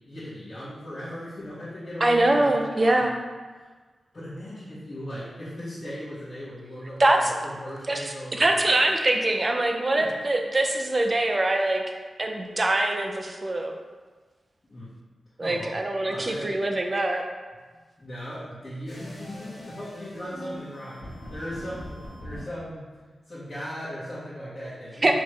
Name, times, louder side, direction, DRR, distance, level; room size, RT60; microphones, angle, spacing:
voice 1, 0.1-3.1 3.5-3.7 4.1-8.9 10.0-10.1 14.7-14.9 15.4-15.8 16.0-16.5 18.0-22.8 23.3-25.1, equal, 45° left, -13 dB, 1.5 m, -38 dB
voice 2, 2.0-3.2 7.0-7.3 7.9-8.0 8.3-11.8 12.2-13.7 15.4-17.2 25.0-25.1, right 2 dB, 40° right, 3 dB, 0.5 m, -23 dB
sound 1, 18.9-22.4, equal, 70° left, 1.3 m, -42 dB
4.4 x 3.4 x 3.2 m, 1.4 s
cardioid pair, 65°, 0 cm